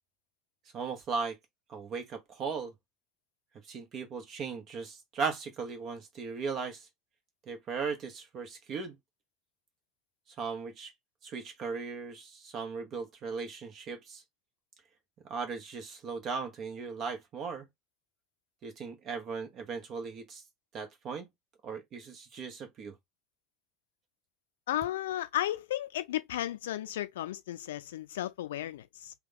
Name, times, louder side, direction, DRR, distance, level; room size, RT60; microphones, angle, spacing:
voice 1, 0.7-1.4 1.7-2.7 3.6-6.9 7.5-9.0 10.4-10.9 11.2-14.2 15.3-17.7 18.6-20.4 20.7-21.3 21.6-22.9, right 5 dB, 40° right, 1.1 m, -37 dB
voice 2, 24.7-29.1, left 13 dB, 70° left, 0.5 m, -34 dB
3.7 x 2.3 x 3.6 m
figure-of-eight pair, 70°, 0 cm